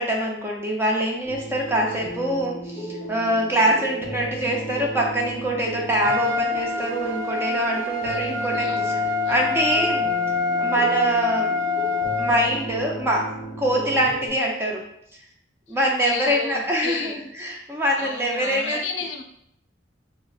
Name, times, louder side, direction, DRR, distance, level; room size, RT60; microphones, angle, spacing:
voice 1, 0.0-9.0 9.3-10.1 10.6-11.5 12.2-14.8 15.7-18.8, right 1 dB, 10° right, -1 dB, 0.5 m, -24 dB
sound 1, 1.3-14.3, right 1 dB, 25° left, 0.7 m, -35 dB
Trumpet, 6.0-12.5, left 4 dB, 90° right, 0.6 m, -25 dB
voice 2, 8.1-8.9 9.2-9.6 15.7-17.2 17.9-19.2, left 5 dB, 75° left, 3 dB, 0.5 m, -34 dB
5.5 x 2.1 x 2.3 m, 0.73 s
head